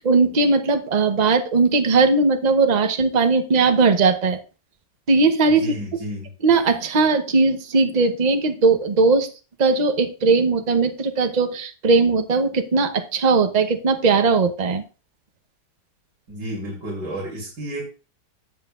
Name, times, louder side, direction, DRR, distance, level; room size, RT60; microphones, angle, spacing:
voice 1, 0.0-4.4 5.1-5.6 6.4-9.3 9.6-14.8, right 4 dB, 35° right, 7 dB, 0.7 m, -19 dB
voice 2, 5.5-6.3 16.3-17.8, right 1 dB, 70° right, -4 dB, 3.4 m, -31 dB
17.5 x 7.4 x 2.4 m, 0.33 s
omnidirectional pair, 1.9 m